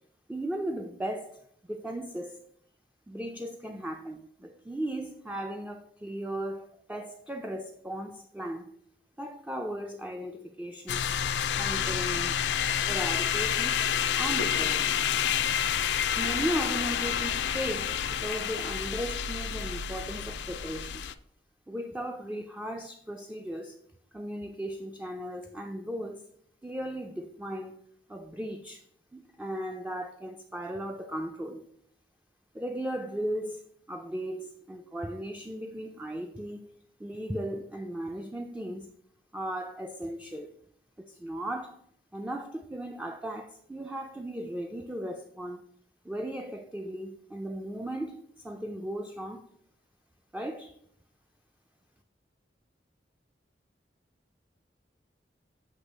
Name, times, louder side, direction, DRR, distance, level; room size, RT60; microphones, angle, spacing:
voice 1, 0.3-1.4 1.7-2.4 3.1-8.7 9.2-11.1 11.6-12.4 12.9-13.9 14.1-14.9 16.2-21.0 21.7-23.7 24.1-26.2 26.6-27.8 28.1-28.8 29.1-31.6 32.5-36.7 37.0-38.9 39.3-40.5 41.0-41.8 42.1-45.6 46.1-49.5 50.3-50.7, right 1 dB, 10° right, 0.3 m, -36 dB
sound 1, 10.9-21.1, left 8 dB, 80° left, 0.4 m, -29 dB
8.1 x 2.9 x 5.2 m
head